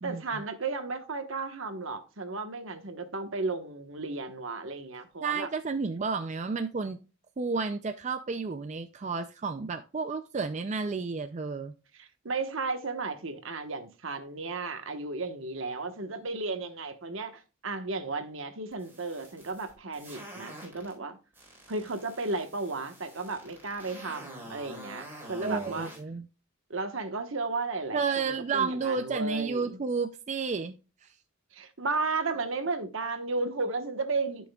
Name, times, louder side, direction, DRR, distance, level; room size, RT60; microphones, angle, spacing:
voice 1, 0.0-5.5 12.0-21.2 21.7-25.9 26.7-29.8 31.5-34.5, right 3 dB, 65° right, 1.2 m, -34 dB
voice 2, 5.2-7.0 7.4-11.7 25.4-26.3 27.9-31.1, right 4 dB, 35° right, 0.4 m, -31 dB
sound 1, 18.7-20.9 21.3-26.0, right 1 dB, 10° right, 4.1 m, -47 dB
14.0 x 6.2 x 2.3 m
head